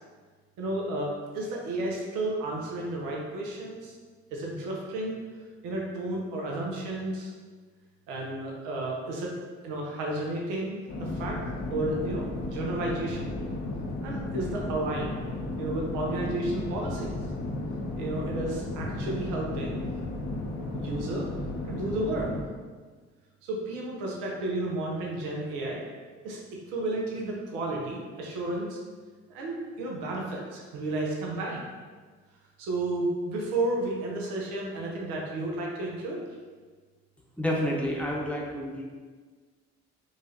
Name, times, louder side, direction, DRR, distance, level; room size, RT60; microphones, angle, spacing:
voice 1, 0.6-4.0 4.3-5.2 5.6-7.3 8.1-9.3 9.6-11.4 11.7-13.3 14.0-15.2 15.6-17.1 18.0-19.8 20.7-21.3 21.6-22.3 23.4-25.8 26.2-28.8 29.3-31.6 32.6-36.2, right 2 dB, 80° right, -2 dB, 0.7 m, -32 dB
sound 1, 10.9-22.4, left 2 dB, 60° left, 0.8 m, -34 dB
voice 2, 37.4-38.8, equal, 5° left, -3 dB, 0.9 m, -29 dB
4.7 x 2.4 x 2.7 m, 1.5 s
hypercardioid pair, 55°, 31 cm